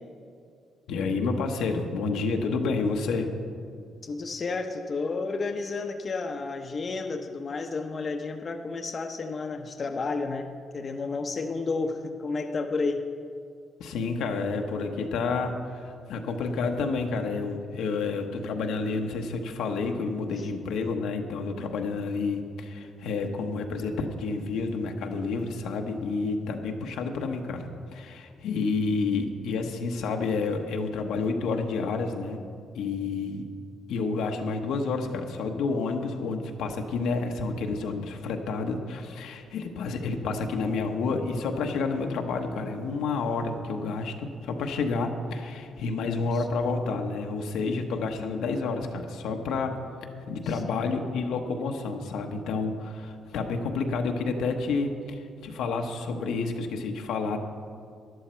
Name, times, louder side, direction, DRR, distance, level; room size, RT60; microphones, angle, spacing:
voice 1, 0.9-3.3 13.8-32.4 32.7-33.4 33.9-49.8 50.3-57.4, left 4 dB, 80° left, 3 dB, 1.0 m, -29 dB
voice 2, 4.0-10.5 10.7-13.0 20.4-20.5 40.0-40.1 46.0-46.4 50.7-50.8, left 3 dB, 40° left, 4 dB, 0.8 m, -31 dB
12.5 x 11.0 x 4.4 m, 2.3 s
cardioid pair, 90°, 0 cm